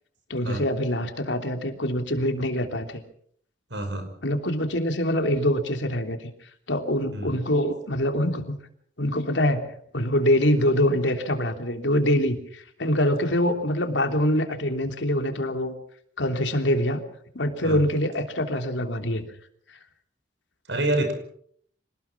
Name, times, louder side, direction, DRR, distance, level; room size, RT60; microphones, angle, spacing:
voice 1, 0.3-3.0 4.2-6.3 6.7-8.6 9.0-9.7 9.9-15.7 16.2-17.0 17.3-19.2, left 1 dB, 85° left, 5 dB, 3.2 m, -24 dB
voice 2, 3.7-4.1 7.1-7.4 17.6-17.8 20.7-21.1, right 1 dB, 75° right, 7 dB, 5.6 m, -27 dB
26.5 x 19.0 x 6.1 m, 0.64 s
head